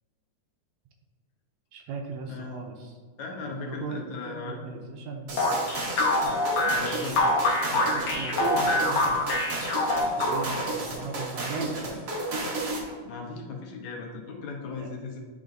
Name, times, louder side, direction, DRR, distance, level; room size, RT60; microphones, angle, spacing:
voice 1, 1.7-2.9 3.3-5.7 6.2-7.2 7.7-9.4 10.2-12.0 14.8-14.9, right 4 dB, 80° right, 2 dB, 1.8 m, -38 dB
voice 2, 2.3-2.6 3.2-4.6 6.6-7.4 13.0-15.2, left 4 dB, 75° left, 0 dB, 2.1 m, -37 dB
sound 1, 5.3-12.9, right 2 dB, 60° right, 1.0 m, -33 dB
sound 2, 5.4-10.7, left 2 dB, 60° left, 1.7 m, -25 dB
10.5 x 3.7 x 2.6 m, 1.5 s
omnidirectional pair, 3.3 m